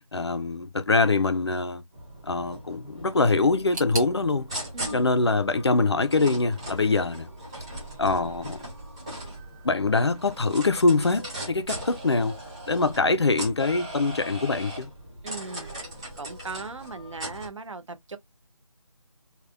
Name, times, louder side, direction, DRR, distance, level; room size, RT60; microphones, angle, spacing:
voice 1, 0.1-1.8 2.2-4.5 4.9-7.3 8.0-8.7 9.6-12.4 12.7-14.9, left 3 dB, 45° left, 0.5 m, -24 dB
sound 1, 1.9-17.5, right 1 dB, 10° right, 0.7 m, -39 dB
sound 2, 3.7-6.6 6.9-7.7 8.0-8.1 8.9-9.0, right 2 dB, 30° right, 1.6 m, -41 dB
voice 2, 4.7-5.1 15.2-15.7 16.2-18.2, right 3 dB, 55° right, 0.7 m, -38 dB
3.5 x 2.2 x 3.3 m
figure-of-eight pair, 170°, 19 cm